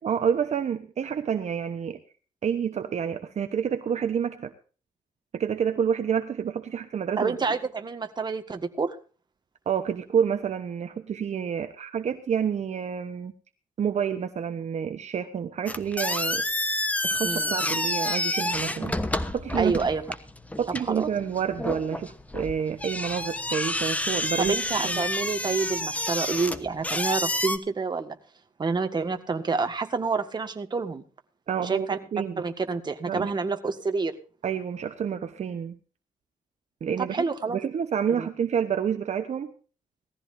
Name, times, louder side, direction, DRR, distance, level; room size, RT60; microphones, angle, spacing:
voice 1, 0.0-2.0 2.4-4.5 5.3-7.4 9.7-13.3 13.8-16.4 17.0-19.0 19.3-19.8 20.6-24.6 24.8-25.0 31.5-32.4 33.0-33.3 34.4-35.8 36.8-37.2 37.5-39.5, right 7 dB, 55° right, 8 dB, 1.1 m, -28 dB
voice 2, 7.2-9.0 17.2-17.5 19.6-20.0 20.9-21.1 24.4-28.2 28.6-31.0 31.6-32.0 32.4-34.2 37.1-37.6 38.2-38.3, right 4 dB, 30° right, 6 dB, 1.8 m, -28 dB
sound 1, 15.7-27.6, left 1 dB, 10° left, 1.1 m, -29 dB
19.0 x 14.5 x 2.7 m, 0.37 s
cardioid pair, 125°, 14 cm